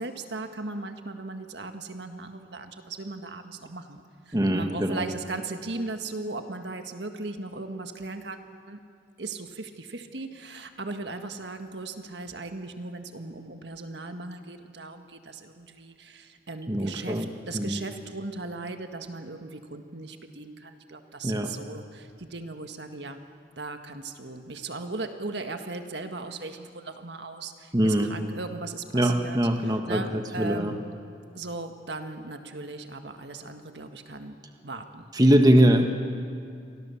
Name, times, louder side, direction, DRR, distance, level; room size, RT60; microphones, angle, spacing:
voice 1, 0.0-8.4 8.7-8.8 9.2-23.2 23.5-30.9 31.3-34.4 34.6-35.1, right 3 dB, 65° right, 6 dB, 1.7 m, -37 dB
voice 2, 4.3-5.1 16.7-17.3 17.5-17.8 21.2-21.5 27.7-28.1 28.9-30.7 35.1-35.9, right 1 dB, 20° right, 5 dB, 1.4 m, -22 dB
29.5 x 24.0 x 7.1 m, 2.3 s
head